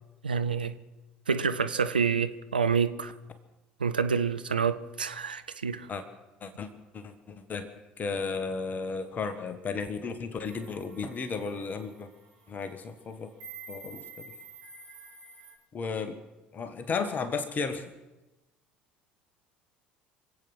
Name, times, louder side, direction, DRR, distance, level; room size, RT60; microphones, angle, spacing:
voice 1, 0.2-0.7 1.3-3.1 3.8-5.9, right 6 dB, 85° right, 0.7 m, -28 dB
voice 2, 6.9-7.7 8.0-12.1 12.5-13.3 13.7-14.0 15.7-16.2 16.5-17.8, left 4 dB, 35° left, 1.7 m, -34 dB
sound 1, 10.4-15.5, right 4 dB, 65° right, 7.2 m, -49 dB
25.5 x 8.8 x 6.2 m
figure-of-eight pair, 60°, 5 cm